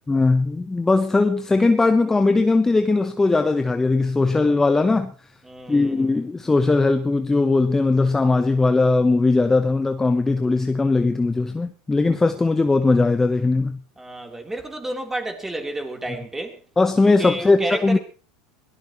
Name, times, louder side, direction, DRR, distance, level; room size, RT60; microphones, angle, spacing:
voice 1, 0.1-5.1 5.7-13.8 16.8-18.0, left 3 dB, 15° left, 1.1 m, -19 dB
voice 2, 5.4-6.1 14.0-16.6 17.2-18.0, right 1 dB, 10° right, 3.9 m, -31 dB
22.5 x 18.5 x 3.2 m
hypercardioid pair, 95°, 3 cm